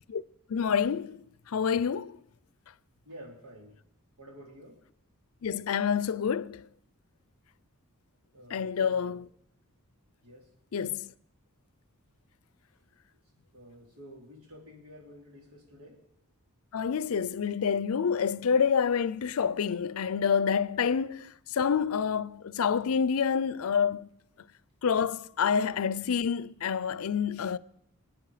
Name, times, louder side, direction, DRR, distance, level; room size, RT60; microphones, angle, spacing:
voice 1, 0.5-1.2 1.5-2.2 5.4-6.6 8.5-9.2 10.7-11.1 16.7-24.1 24.8-27.6, left 6 dB, 80° left, 0.5 m, -28 dB
voice 2, 3.0-3.8 4.2-4.8 8.3-9.2 10.2-10.5 13.5-16.0, equal, 85° right, 3.6 m, -50 dB
23.5 x 9.3 x 5.0 m
head